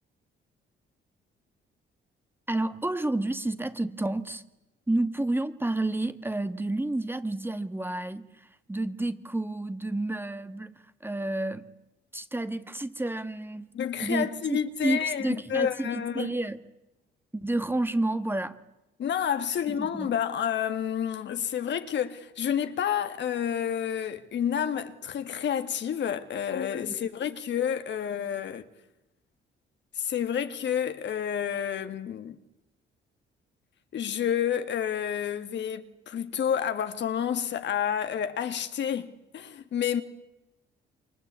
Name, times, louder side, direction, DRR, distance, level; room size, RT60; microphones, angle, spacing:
voice 1, 2.5-4.4 4.9-10.7 11.0-11.7 12.1-13.7 14.0-16.6 17.3-18.6 19.7-20.1 26.9-27.0, right 2 dB, 10° right, 1.6 m, -30 dB
voice 2, 13.7-16.4 19.0-28.7 30.0-32.4 33.9-40.0, left 8 dB, 65° left, 2.0 m, -29 dB
29.0 x 23.5 x 8.3 m
cardioid pair, 90°, 20 cm